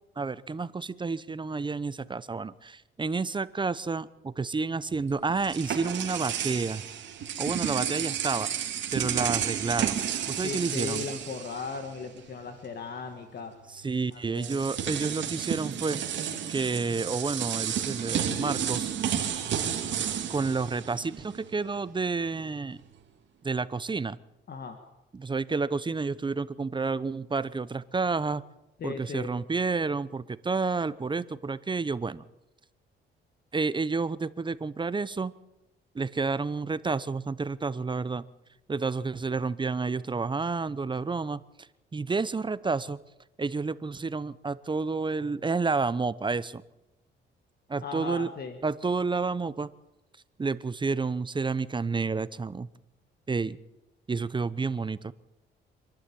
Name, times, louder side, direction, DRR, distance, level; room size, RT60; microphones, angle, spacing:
voice 1, 0.2-6.8 7.4-8.5 8.9-11.0 13.8-16.0 16.5-18.9 20.3-22.8 23.4-24.2 25.1-28.4 28.8-32.2 33.5-35.3 35.9-38.2 38.7-41.4 41.9-43.0 43.4-46.6 47.7-48.3 48.6-49.7 50.4-52.7 53.3-53.6 54.1-55.1, right 4 dB, 25° right, 17 dB, 0.8 m, -30 dB
sound 1, 4.9-12.2 12.5-12.7 13.8-13.9 14.4-21.5, right 9 dB, 70° right, 2.7 m, -32 dB
voice 2, 10.4-13.5 14.1-14.7 24.5-24.8 28.8-29.3 47.8-48.6, left 4 dB, 55° left, 6 dB, 2.1 m, -37 dB
26.5 x 11.5 x 8.8 m, 0.95 s
cardioid pair, 90°, 20 cm